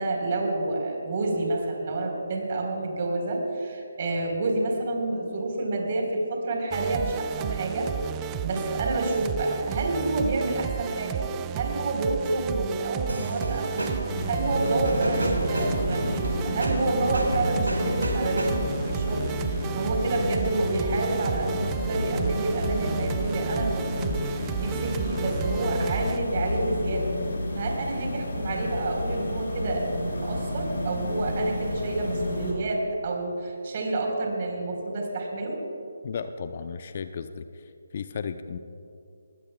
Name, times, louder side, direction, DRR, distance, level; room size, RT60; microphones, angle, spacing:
voice 1, 0.0-7.9 8.4-13.9 14.3-27.1 27.6-35.6, right 2 dB, 40° right, 0 dB, 4.1 m, -28 dB
sound 1, 6.7-26.2, right 12 dB, 20° right, 0.3 m, -33 dB
sound 2, 13.1-18.9, right 1 dB, 85° right, 4.7 m, -32 dB
sound 3, 14.1-32.5, left 2 dB, 60° left, 4.7 m, -31 dB
voice 2, 36.0-37.4 37.9-38.6, left 6 dB, 45° left, 10 dB, 0.7 m, -34 dB
22.0 x 20.5 x 2.3 m, 2.5 s
figure-of-eight pair, 150°, 0 cm